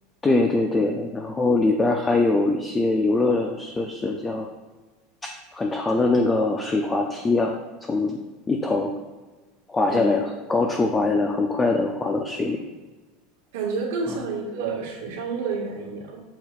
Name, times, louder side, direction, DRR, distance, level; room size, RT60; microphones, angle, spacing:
voice 1, 0.2-4.5 5.2-7.5 7.9-8.2 8.5-8.9 9.7-12.6 14.1-14.2, left 3 dB, 15° left, 3 dB, 0.5 m, -23 dB
voice 2, 9.9-10.2 13.5-16.2, right 4 dB, 80° right, -1 dB, 1.7 m, -29 dB
7.2 x 6.3 x 2.4 m, 1.3 s
supercardioid pair, 145°, 0 cm